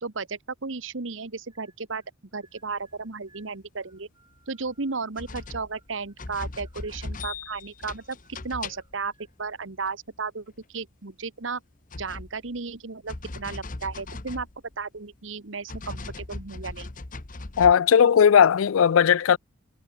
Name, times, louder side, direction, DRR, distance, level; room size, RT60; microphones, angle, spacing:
voice 1, 0.0-2.0 2.3-4.1 4.5-9.1 9.4-11.6 11.9-14.5 14.8-16.9, right 4 dB, 70° right, 1.3 m, -34 dB
sound 1, 1.5-2.1 2.4-6.2 6.5-7.5 7.8-9.7, right 3 dB, 20° right, 6.1 m, -64 dB
sound 2, 4.7-4.8 5.2-9.1 9.7-9.9 11.7-12.8 13.1-15.1 15.7-17.7, left 2 dB, 40° left, 1.2 m, -38 dB
voice 2, 17.6-19.4, left 7 dB, 90° left, 0.4 m, -17 dB
head